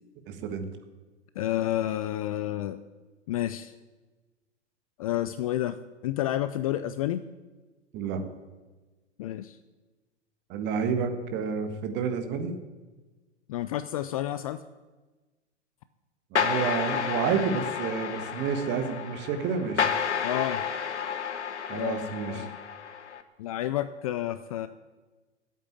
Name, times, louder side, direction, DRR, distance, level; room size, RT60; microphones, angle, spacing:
voice 1, 0.3-0.6 7.9-8.2 10.5-12.5 16.3-19.9 21.7-22.5, right 6 dB, 30° right, 7 dB, 1.4 m, -29 dB
voice 2, 1.4-2.8 3.3-3.7 5.0-7.2 9.2-9.6 13.5-14.6 20.2-20.7 21.7-22.6 23.4-24.7, left 13 dB, 35° left, 13 dB, 0.4 m, -30 dB
sound 1, 16.3-23.2, left 7 dB, 75° left, 1.1 m, -31 dB
8.8 x 8.2 x 8.9 m, 1.3 s
figure-of-eight pair, 100°, 35 cm